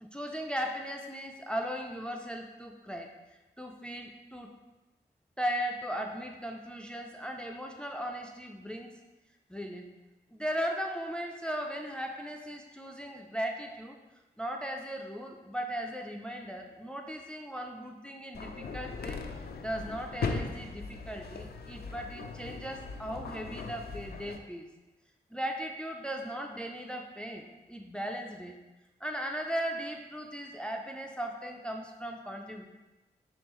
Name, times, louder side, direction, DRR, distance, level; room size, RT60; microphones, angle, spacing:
voice 1, 0.0-3.1 3.6-4.5 5.4-8.9 9.5-9.9 10.3-14.0 14.4-24.7 25.3-28.5 29.0-32.7, equal, 5° left, 2 dB, 0.4 m, -37 dB
sound 1, 18.3-24.4, left 4 dB, 65° left, 0.4 m, -39 dB
3.7 x 3.6 x 3.0 m, 1.1 s
cardioid pair, 45°, 18 cm